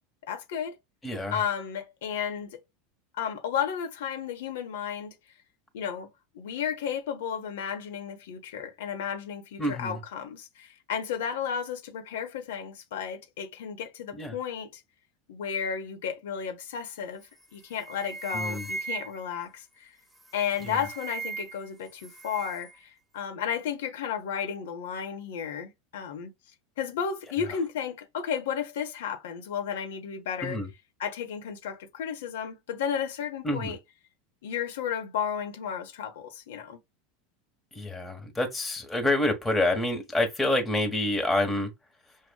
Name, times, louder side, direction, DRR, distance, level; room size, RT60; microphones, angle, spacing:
voice 1, 0.3-0.8 1.3-2.6 3.1-5.1 5.7-6.1 6.3-14.8 15.3-17.2 17.5-19.9 20.3-26.3 26.8-30.6 31.0-33.8 34.4-36.8, left 8 dB, 75° left, 1.2 m, -33 dB
voice 2, 1.0-1.4 9.6-10.0 14.1-14.4 18.3-18.7 20.6-20.8 30.4-30.7 33.4-33.7 37.7-41.7, left 1 dB, 10° left, 1.4 m, -27 dB
sound 1, 17.2-17.4 17.7-19.4 20.2-21.7 21.9-22.7, right 4 dB, 5° right, 0.9 m, -38 dB
6.6 x 2.5 x 2.3 m
hypercardioid pair, 90°, 0 cm